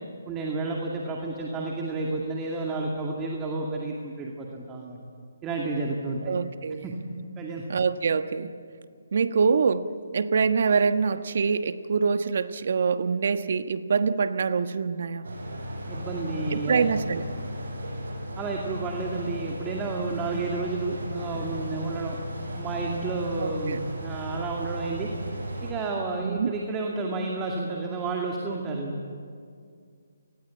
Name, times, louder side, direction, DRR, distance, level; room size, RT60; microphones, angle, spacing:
voice 1, 0.3-5.0 5.4-6.3 6.8-6.9 7.4-7.6 15.9-16.9 18.4-22.2 22.5-25.1 25.6-28.9, right 3 dB, 15° right, 0 dB, 2.3 m, -31 dB
voice 2, 6.2-6.9 7.7-8.5 9.1-9.9 10.1-15.3 16.5-17.2 23.4-23.9 26.2-26.5, right 5 dB, 55° right, 10 dB, 1.3 m, -25 dB
sound 1, 15.2-25.7, equal, 75° right, 7.9 m, -35 dB
29.0 x 20.0 x 8.6 m, 2.2 s
hypercardioid pair, 160°, 0 cm